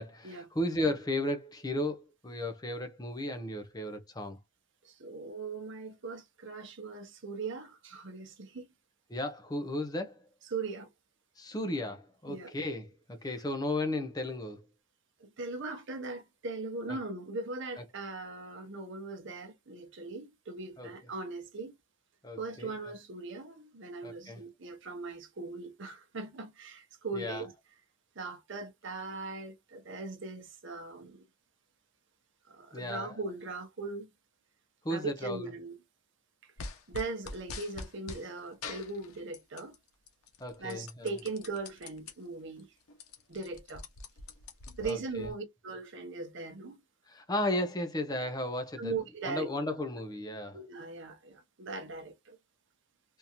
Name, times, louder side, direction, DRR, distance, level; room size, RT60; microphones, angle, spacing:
voice 1, 0.0-4.4 9.1-10.2 11.4-14.6 16.9-17.0 20.8-20.9 22.2-22.7 24.0-24.4 27.1-27.4 32.7-33.2 34.8-35.5 40.4-41.1 44.8-45.3 47.1-48.9 49.2-50.6, left 1 dB, 15° left, 0.6 m, -34 dB
voice 2, 4.8-8.6 10.5-10.9 12.3-12.5 15.2-21.7 22.4-27.5 28.2-31.2 32.5-34.1 34.9-35.7 36.4-36.5 36.9-39.7 40.6-42.7 43.3-43.8 44.8-46.8 48.8-49.5 50.5-52.4, right 3 dB, 55° right, 0.8 m, -39 dB
sound 1, 36.6-38.2 38.6-39.8 40.1-42.1 42.6-42.7 42.9-45.3, left 4 dB, 80° left, 0.9 m, -44 dB
3.6 x 2.7 x 2.9 m
head